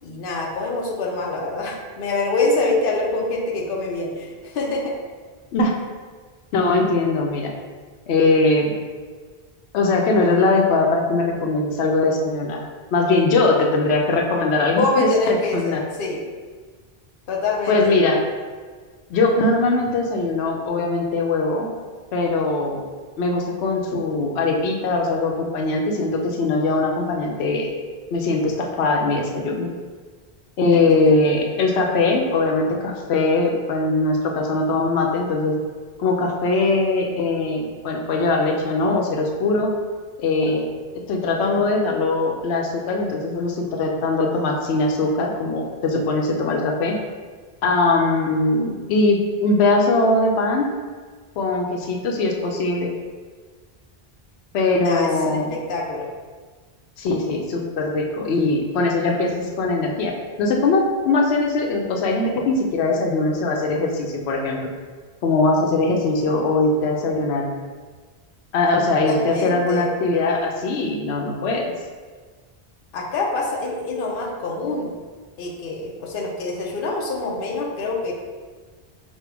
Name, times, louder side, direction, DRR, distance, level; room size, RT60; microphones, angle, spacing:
voice 1, 0.0-4.9 14.7-16.2 17.3-17.9 30.7-31.2 54.8-56.1 68.9-69.9 72.9-74.9 75.4-78.1, left 2 dB, 60° left, -1 dB, 0.9 m, -25 dB
voice 2, 6.5-7.5 8.1-8.7 9.7-12.6 12.9-15.8 17.7-18.2 19.1-21.7 22.1-22.8 23.2-27.8 28.1-29.7 30.6-35.5 36.0-39.7 40.2-40.7 41.1-47.0 47.6-50.7 51.4-52.9 54.5-55.5 57.0-64.6 65.2-67.5 68.5-71.7, left 3 dB, 90° left, 1 dB, 0.9 m, -21 dB
5.4 x 2.1 x 4.5 m, 1.5 s
omnidirectional pair, 1.1 m